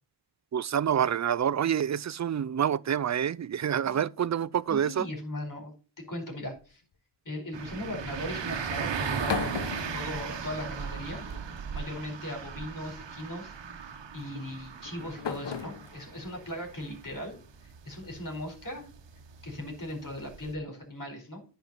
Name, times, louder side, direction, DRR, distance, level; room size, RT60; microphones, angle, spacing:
voice 1, 0.5-5.1, right 9 dB, 40° right, 0.5 m, -27 dB
voice 2, 4.7-6.8 7.2-9.6 9.9-11.3 11.7-17.3 17.8-18.9 19.4-21.4, left 1 dB, 50° left, 4.5 m, -38 dB
sound 1, 6.4-6.9 8.9-10.8 11.2-11.8 12.9-13.2 14.3-17.6, left 7 dB, 80° left, 1.1 m, -39 dB
sound 2, 7.5-20.5, right 6 dB, 85° right, 1.1 m, -38 dB
10.5 x 4.6 x 5.4 m
wide cardioid pair, 65°, 42 cm